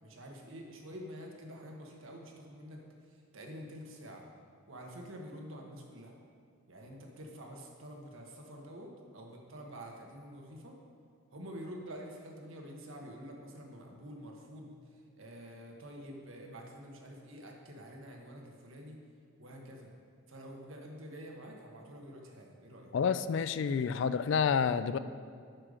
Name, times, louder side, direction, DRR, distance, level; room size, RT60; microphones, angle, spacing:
voice 1, 0.0-4.2 4.7-6.1 6.7-10.8 11.3-19.0 19.4-19.9 20.3-22.9, equal, 75° right, 1 dB, 1.2 m, -48 dB
voice 2, 22.9-25.0, left 6 dB, 60° left, 13 dB, 0.3 m, -29 dB
8.9 x 6.6 x 5.0 m, 2.3 s
head